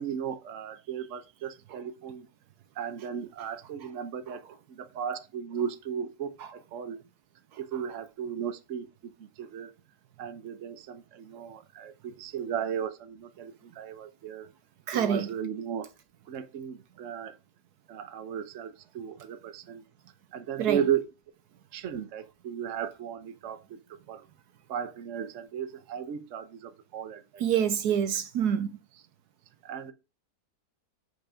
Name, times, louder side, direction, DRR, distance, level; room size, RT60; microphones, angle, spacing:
voice 1, 0.0-2.3 2.8-4.4 4.7-7.0 7.6-9.7 10.2-14.5 14.9-15.9 16.3-17.4 17.9-19.8 20.3-21.0 21.7-23.8 24.1-24.3 24.7-27.4 29.6-29.9, right 8 dB, 55° right, 1.1 m, -35 dB
voice 2, 14.9-15.3 20.6-20.8 27.4-28.7, right 8 dB, 75° right, 1.2 m, -27 dB
7.8 x 5.2 x 4.9 m
omnidirectional pair, 1.8 m